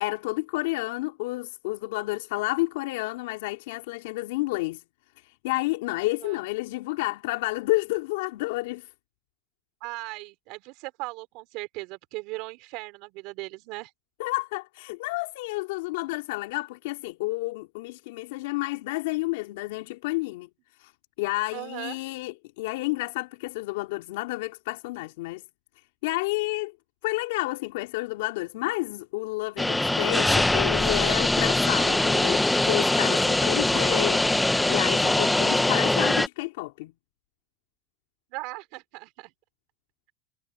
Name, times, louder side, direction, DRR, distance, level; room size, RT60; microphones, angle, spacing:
voice 1, 0.0-4.8 5.2-8.9 14.2-20.5 20.8-20.9 21.2-25.4 26.0-26.7 27.0-36.9, left 21 dB, 80° left, 3.6 m, -30 dB
voice 2, 6.0-6.4 9.8-13.9 21.5-22.0 38.3-39.3, right 24 dB, 60° right, 5.1 m, -38 dB
sound 1, 29.6-36.3, left 2 dB, 5° left, 1.0 m, -22 dB
supercardioid pair, 145°, 0 cm